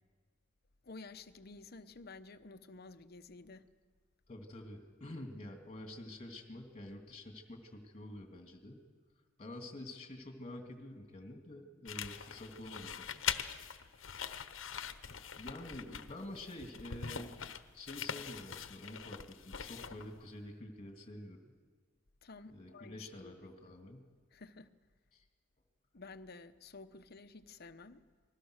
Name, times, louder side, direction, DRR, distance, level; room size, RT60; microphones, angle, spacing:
voice 1, 0.8-3.7 22.2-23.8 24.3-24.7 25.9-28.0, left 3 dB, 55° left, 0.9 m, -52 dB
voice 2, 4.3-8.8 9.4-13.2 15.3-17.3 17.7-21.5 22.5-24.1 25.1-25.2, left 1 dB, 30° left, 2.9 m, -48 dB
sound 1, 11.8-20.2, left 8 dB, 80° left, 1.0 m, -43 dB
29.0 x 20.5 x 6.6 m
head